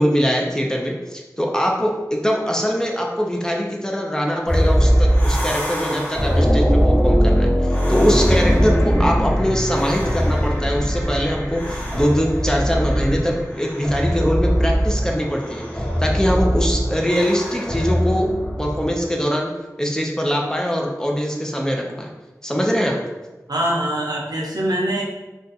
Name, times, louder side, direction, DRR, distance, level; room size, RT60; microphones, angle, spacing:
voice 1, 0.0-7.5 7.9-18.3 18.6-19.5 19.8-22.1 22.4-23.0, equal, 10° left, -1 dB, 0.5 m, -22 dB
sound 1, 4.5-19.0, equal, 30° left, 1.0 m, -20 dB
voice 2, 23.5-25.0, right 1 dB, 85° right, -2 dB, 0.6 m, -23 dB
2.5 x 2.3 x 4.0 m, 1.1 s
wide cardioid pair, 45°, 7 cm